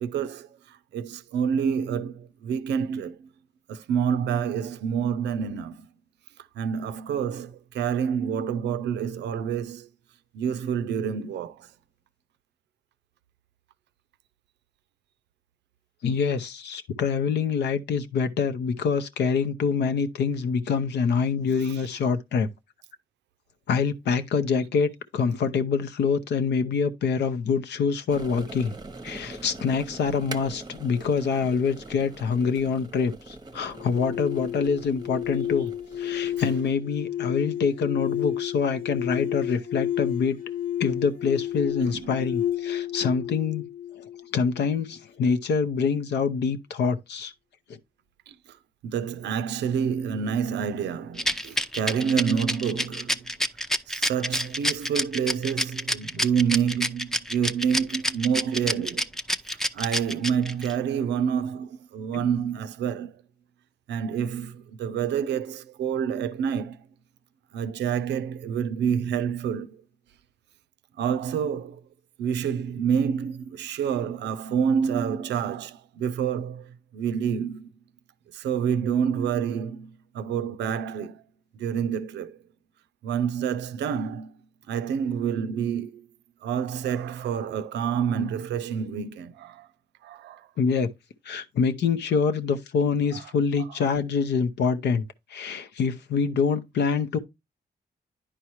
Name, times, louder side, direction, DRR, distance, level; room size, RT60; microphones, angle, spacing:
voice 1, 0.0-3.3 3.7-5.9 6.6-9.9 10.3-11.7 21.5-21.9 41.8-42.1 48.3-48.6 48.8-53.2 53.9-59.1 59.7-63.1 63.9-66.8 67.5-69.8 71.0-71.8 72.2-77.7 78.3-81.2 81.5-82.4 83.0-84.4 84.7-86.1 86.4-89.7 90.0-90.5 93.1-93.2, right 7 dB, 85° right, 0.5 m, -28 dB
voice 2, 16.0-22.5 23.7-28.7 29.0-35.7 36.0-40.4 40.8-43.6 43.9-44.0 44.3-47.3 56.2-56.3 62.1-62.2 90.6-90.9 91.2-97.2, left 5 dB, 80° left, 0.8 m, -25 dB
sound 1, 28.1-36.7, right 2 dB, 25° right, 0.8 m, -43 dB
sound 2, 33.7-44.8, left 11 dB, 55° left, 1.1 m, -32 dB
Rattle, 51.2-60.7, equal, ahead, 0.5 m, -27 dB
10.0 x 4.6 x 3.0 m
cardioid pair, 60°, 17 cm